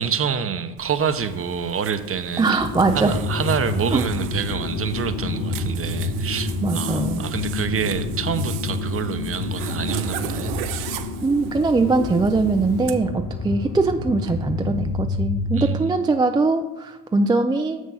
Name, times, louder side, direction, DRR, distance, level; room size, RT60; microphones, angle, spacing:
voice 1, 0.0-2.5 2.9-10.5 15.6-16.0, right 7 dB, 30° right, 11 dB, 0.7 m, -27 dB
Zipper (clothing), 0.8-12.9, right 11 dB, 85° right, 0.7 m, -37 dB
voice 2, 2.4-3.2 3.9-4.0 6.6-7.2 11.2-17.8, right 3 dB, 10° right, 6 dB, 0.3 m, -21 dB
sound 1, 2.6-15.8, left 3 dB, 50° left, 1.9 m, -28 dB
6.4 x 6.2 x 5.5 m, 1.0 s
supercardioid pair, 80°, 43 cm